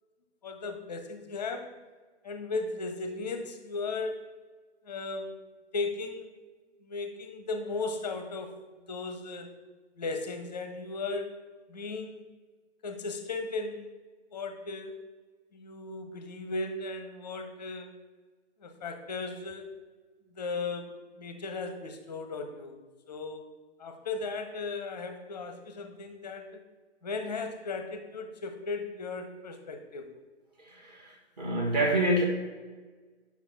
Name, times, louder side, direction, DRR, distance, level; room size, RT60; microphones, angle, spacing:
voice 1, 0.4-1.7 2.2-4.2 4.8-5.3 5.7-6.3 6.8-8.5 8.9-9.5 10.0-11.4 11.7-12.2 12.8-13.9 14.3-14.9 15.5-18.0 18.6-19.7 20.3-22.8 23.1-26.6 27.0-30.1, left 3 dB, 5° left, 6 dB, 0.7 m, -36 dB
voice 2, 30.6-32.2, right 1 dB, 35° right, 0 dB, 1.7 m, -27 dB
10.0 x 6.0 x 5.8 m, 1.4 s
figure-of-eight pair, 140°, 35 cm